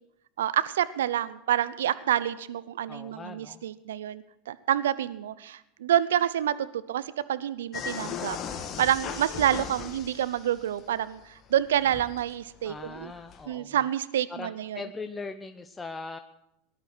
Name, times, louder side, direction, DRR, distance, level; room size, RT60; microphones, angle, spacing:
voice 1, 0.4-13.1 13.5-14.8, right 11 dB, 80° right, 16 dB, 0.6 m, -28 dB
voice 2, 2.9-3.6 12.6-13.9 14.3-16.2, left 4 dB, 20° left, 7 dB, 0.8 m, -40 dB
sound 1, 7.7-11.2 11.5-13.4, left 7 dB, 40° left, 1.9 m, -38 dB
18.5 x 11.0 x 6.2 m, 0.83 s
hypercardioid pair, 90°, 0 cm